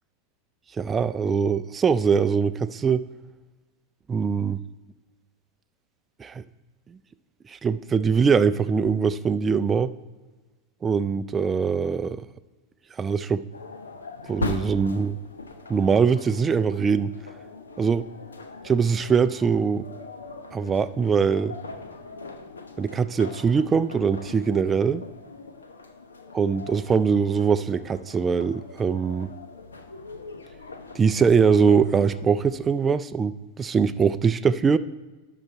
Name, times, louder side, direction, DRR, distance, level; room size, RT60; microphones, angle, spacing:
voice 1, 0.8-3.1 4.1-4.6 6.2-6.4 7.5-9.9 10.8-12.2 13.0-13.4 14.3-15.2 15.7-17.1 17.8-18.0 18.6-19.9 20.5-21.6 22.8-25.0 26.3-29.3 30.9-34.8, right 6 dB, 20° right, 11 dB, 0.3 m, -22 dB
sound 1, 13.5-32.6, left 3 dB, 85° left, 0.8 m, -40 dB
11.5 x 4.1 x 4.6 m, 1.2 s
figure-of-eight pair, 95°, 0 cm